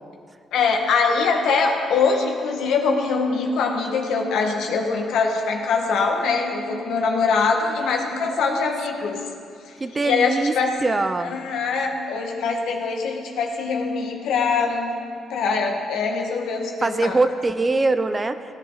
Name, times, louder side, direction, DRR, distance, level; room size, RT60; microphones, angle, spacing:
voice 1, 0.5-9.2 9.6-9.7 10.0-10.8 11.2-14.9 15.3-17.2, left 4 dB, 80° left, 2 dB, 1.6 m, -23 dB
voice 2, 8.3-8.7 9.8-10.5 10.8-11.3 16.8-18.4, right 3 dB, 25° right, 10 dB, 0.6 m, -22 dB
17.0 x 11.0 x 4.0 m, 2.5 s
cardioid pair, 90°, 0 cm